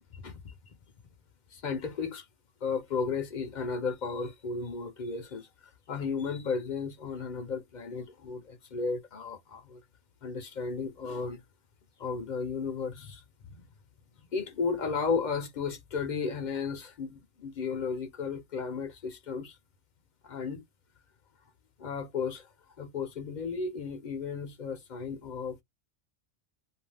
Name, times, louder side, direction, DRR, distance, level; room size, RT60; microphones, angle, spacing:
voice 1, 1.5-2.2 2.6-5.5 5.9-9.8 10.2-11.4 12.0-13.2 13.6-13.7 14.3-19.6 20.2-20.6 21.8-22.5 22.8-25.6, left 5 dB, 50° left, 0.6 m, -34 dB
2.4 x 2.3 x 3.2 m
omnidirectional pair, 1.2 m